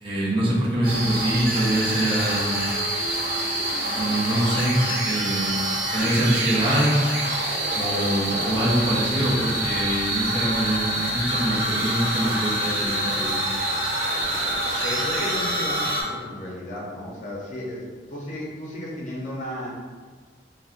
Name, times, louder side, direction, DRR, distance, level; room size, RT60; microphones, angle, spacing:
voice 1, 0.0-2.6 4.0-5.5 5.9-7.0 7.8-13.4, right 1 dB, 30° right, -7 dB, 0.6 m, -24 dB
sound 1, 0.8-16.0, right 1 dB, 50° right, 1.0 m, -26 dB
voice 2, 14.8-19.7, left 1 dB, 45° left, -4 dB, 0.7 m, -34 dB
4.1 x 2.1 x 2.5 m, 1.5 s
head